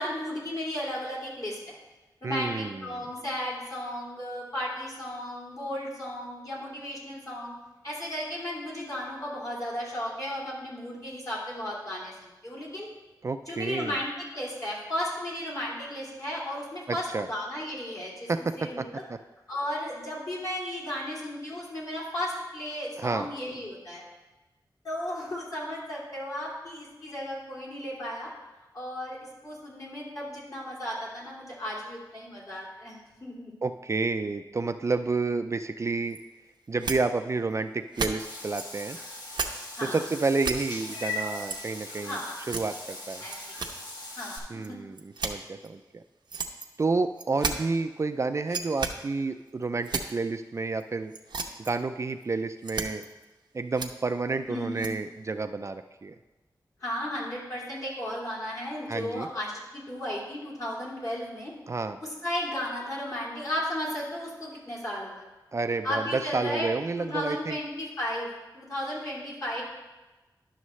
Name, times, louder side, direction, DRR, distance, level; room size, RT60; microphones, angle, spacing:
voice 1, 0.0-1.8 2.2-7.5 7.8-12.9 13.5-18.3 18.6-19.0 19.5-24.0 24.8-28.3 28.7-29.2 29.4-33.5 39.7-40.0 42.0-42.4 43.2-43.5 44.1-44.8 54.5-54.9 56.8-61.5 62.0-65.3 65.8-66.7 67.0-68.3 68.5-69.6, left 1 dB, 50° left, -6 dB, 2.9 m, -34 dB
voice 2, 2.2-3.0 13.2-14.0 16.9-17.3 18.3-19.2 23.0-23.3 33.6-36.2 36.7-39.0 39.8-42.2 42.5-43.2 44.5-46.0 46.8-51.1 51.6-53.0 53.5-56.1 58.9-59.3 61.7-62.0 65.5-67.6, right 3 dB, 40° right, 9 dB, 0.3 m, -30 dB
sound 1, 36.1-36.2 36.8-37.0 37.5-37.6 37.9-38.9 39.3-39.5 39.9-40.0 40.3-40.6 41.4-41.6 41.9-42.0 42.4-42.9 43.3-43.8 44.2-44.3 44.6-44.7 45.0-45.7 46.3-46.8 47.2-47.5 48.5-48.9 49.5-50.1 50.8-50.9 51.1-51.7 52.1-52.2 52.6-53.2 53.7-53.9 54.8-54.9, right 4 dB, 80° right, 0.7 m, -33 dB
Meow / Water / Bathtub (filling or washing), 38.2-44.4, left 2 dB, 65° left, 1.5 m, -39 dB
11.0 x 6.4 x 3.1 m, 1.1 s
wide cardioid pair, 90°, 8 cm